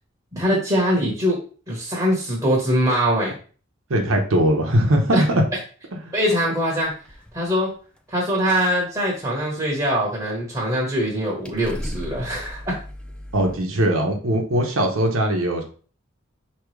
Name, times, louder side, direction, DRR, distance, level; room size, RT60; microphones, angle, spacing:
voice 1, 0.3-1.4 1.7-3.4 5.1-5.3 6.1-6.9 7.3-7.7 8.1-12.8, equal, 20° right, -3 dB, 1.1 m, -22 dB
voice 2, 3.9-5.4 6.0-6.1 13.3-15.6, right 1 dB, 80° right, 2 dB, 0.9 m, -20 dB
sound 1, 6.8-7.5 7.8-8.2 8.5-8.7 9.0-9.2 11.1-11.2 11.4-13.6, equal, 5° left, 0.4 m, -36 dB
4.8 x 3.0 x 3.2 m, 0.39 s
head